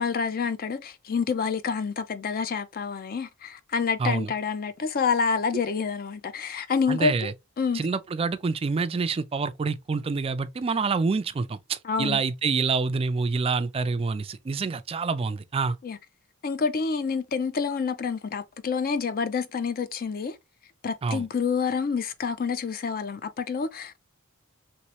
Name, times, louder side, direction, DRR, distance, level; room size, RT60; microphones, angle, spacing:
voice 1, 0.0-7.3 7.6-7.8 11.8-12.2 15.8-16.0 16.4-20.3 20.8-24.0, left 5 dB, 45° left, 0.4 m, -28 dB
voice 2, 4.0-4.3 6.9-7.3 7.7-15.8 21.0-21.3, right 4 dB, 25° right, 0.3 m, -27 dB
3.0 x 3.0 x 2.9 m
head